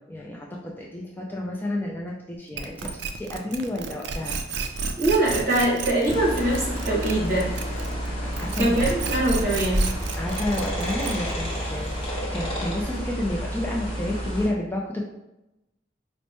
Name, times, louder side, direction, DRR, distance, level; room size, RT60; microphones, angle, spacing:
voice 1, 0.1-4.4 8.3-8.9 10.1-15.0, left 1 dB, 10° left, -2 dB, 0.3 m, -30 dB
sound 1, 2.6-8.1 8.3-11.4, right 4 dB, 65° right, 0.4 m, -32 dB
voice 2, 5.0-7.5 8.6-9.9, right 1 dB, 50° right, -6 dB, 1.5 m, -23 dB
sound 2, 5.1-12.1, equal, 5° right, 0.8 m, -36 dB
sound 3, 6.1-14.5, equal, 30° left, 1.0 m, -30 dB
4.3 x 2.1 x 2.9 m, 0.91 s
head